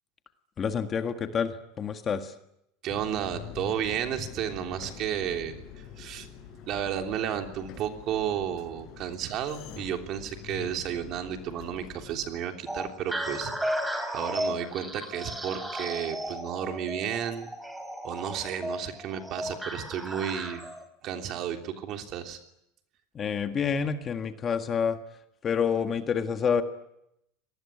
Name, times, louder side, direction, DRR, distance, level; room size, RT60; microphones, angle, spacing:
voice 1, 0.6-2.3 23.1-25.0 25.4-26.6, left 6 dB, 25° left, 7 dB, 1.7 m, -28 dB
voice 2, 2.8-6.3 6.7-13.7 14.1-17.5 18.0-20.6 21.0-22.4, right 9 dB, 45° right, 5 dB, 3.2 m, -32 dB
sound 1, 2.9-12.3, left 9 dB, 45° left, 6.8 m, -45 dB
sound 2, 12.7-20.8, equal, 5° right, 3.6 m, -35 dB
25.5 x 19.5 x 9.9 m, 0.83 s
supercardioid pair, 145°, 0 cm